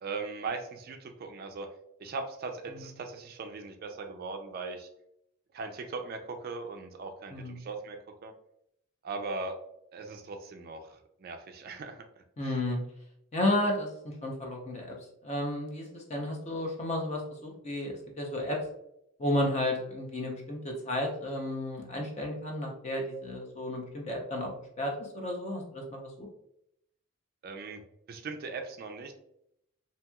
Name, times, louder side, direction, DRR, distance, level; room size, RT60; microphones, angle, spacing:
voice 1, 0.0-1.7 2.0-4.9 5.5-8.0 8.2-8.3 9.0-9.5 9.9-12.0 12.4-12.5 27.4-27.8 28.1-29.1, right 4 dB, 45° right, 5 dB, 0.3 m, -39 dB
voice 2, 7.3-7.6 12.4-12.8 13.3-13.9 14.2-15.0 15.2-18.6 19.2-24.5 24.8-26.3, left 1 dB, 30° left, 1 dB, 0.6 m, -32 dB
2.9 x 2.7 x 2.3 m, 0.76 s
head